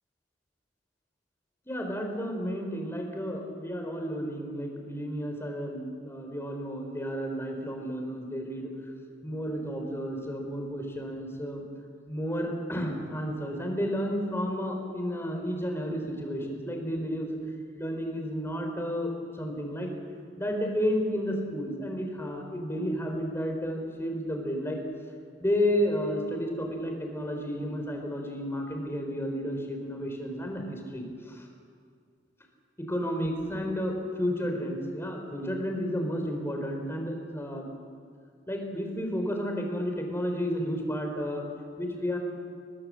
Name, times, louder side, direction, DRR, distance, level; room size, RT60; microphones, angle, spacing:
voice 1, 1.7-8.7 9.2-11.6 12.1-17.4 17.8-19.1 19.4-19.9 20.4-24.8 25.4-31.5 32.8-37.7 38.5-41.5 41.8-42.2, equal, 15° left, 3 dB, 3.9 m, -32 dB
23.5 x 20.0 x 7.5 m, 2.2 s
head